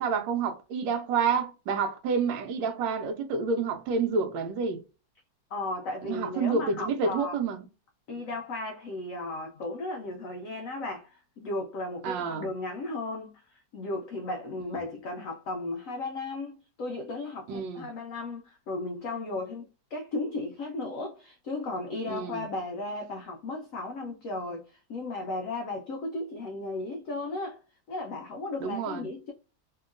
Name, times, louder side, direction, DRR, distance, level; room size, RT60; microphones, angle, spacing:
voice 1, 0.0-4.8 6.0-7.6 12.0-12.5 14.7-14.8 17.5-17.9 22.1-22.4 28.6-29.0, right 5 dB, 85° right, 1.3 m, -29 dB
voice 2, 5.5-7.3 8.1-27.6 27.9-29.3, left 2 dB, 80° left, 0.7 m, -35 dB
2.9 x 2.7 x 2.4 m
omnidirectional pair, 2.0 m